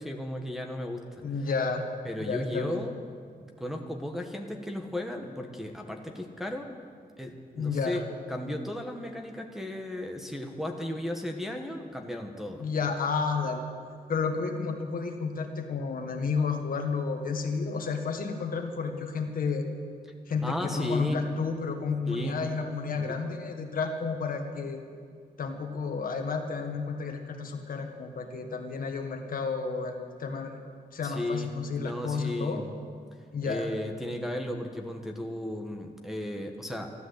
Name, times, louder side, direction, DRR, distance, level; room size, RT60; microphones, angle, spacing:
voice 1, 0.0-1.2 2.0-2.9 3.4-6.7 7.2-8.0 8.3-12.6 20.4-21.2 22.1-22.4 22.9-23.1 31.0-31.5 31.8-32.7 33.4-36.9, left 1 dB, ahead, 2 dB, 1.2 m, -35 dB
voice 2, 1.2-1.8 2.3-2.8 7.5-8.0 12.6-13.6 14.1-19.7 20.3-24.8 25.4-30.5 30.9-32.6 33.3-33.7, left 4 dB, 65° left, 4 dB, 1.6 m, -31 dB
12.5 x 12.5 x 7.9 m, 2.1 s
wide cardioid pair, 130°, 16 cm